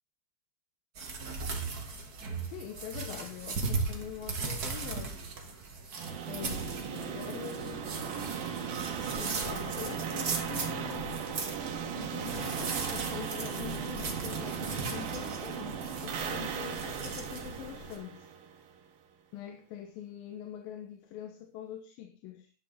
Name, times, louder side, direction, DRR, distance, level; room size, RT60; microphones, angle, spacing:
sound 1, 1.0-18.0, right 4 dB, 35° right, 1.8 m, -38 dB
voice 1, 2.5-5.2 6.3-7.9 9.1-11.2 11.9-18.3 19.3-22.5, left 10 dB, 80° left, 2.8 m, -44 dB
sound 2, 5.9-18.8, right 7 dB, 75° right, 3.5 m, -37 dB
11.5 x 11.0 x 4.2 m
omnidirectional pair, 4.2 m